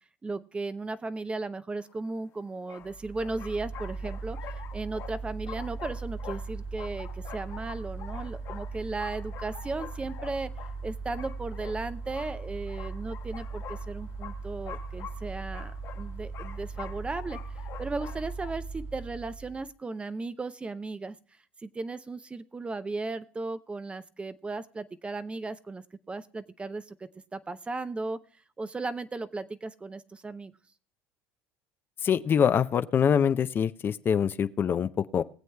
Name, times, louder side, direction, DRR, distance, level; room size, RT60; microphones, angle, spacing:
voice 1, 0.2-10.5 10.8-17.4 17.8-21.2 21.6-28.2 28.6-30.5, right 3 dB, 20° right, 13 dB, 0.6 m, -36 dB
sound 1, 1.9-2.0 2.7-18.5, left 10 dB, 55° left, 1.4 m, -46 dB
Mechanical fan, 2.8-19.7, right 4 dB, 50° right, 1.9 m, -39 dB
voice 2, 32.0-35.2, left 7 dB, 35° left, 12 dB, 0.5 m, -24 dB
21.0 x 7.8 x 2.2 m, 0.44 s
supercardioid pair, 90°, 6 cm